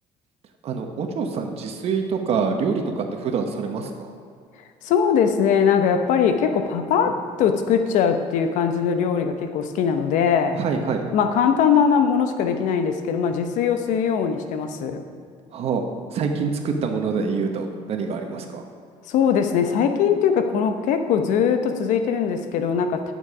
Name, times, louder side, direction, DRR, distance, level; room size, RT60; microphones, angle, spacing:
voice 1, 0.6-4.1 7.0-7.1 10.5-11.0 15.5-15.8 16.1-18.6, right 5 dB, 50° right, 4 dB, 1.2 m, -26 dB
voice 2, 4.8-10.6 11.1-15.0 19.1-23.1, left 7 dB, 70° left, 7 dB, 0.9 m, -21 dB
11.0 x 7.1 x 4.9 m, 2.3 s
cardioid pair, 125°, 13 cm